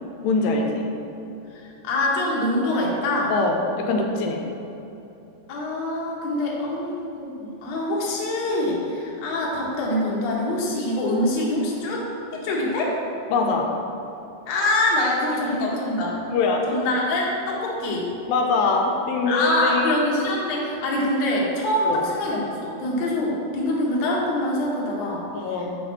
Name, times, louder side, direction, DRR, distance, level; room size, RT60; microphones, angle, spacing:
voice 1, 0.2-0.9 3.3-3.6 3.9-4.4 13.3-13.7 16.3-16.6 18.3-20.1 21.9-22.0 25.3-25.7, left 3 dB, 85° left, 1 dB, 2.3 m, -23 dB
voice 2, 1.5-3.3 5.5-12.0 12.3-12.9 14.5-16.1 16.7-18.1 19.3-25.3, left 1 dB, 60° left, -3 dB, 2.0 m, -24 dB
7.3 x 5.0 x 4.3 m, 2.8 s
omnidirectional pair, 3.9 m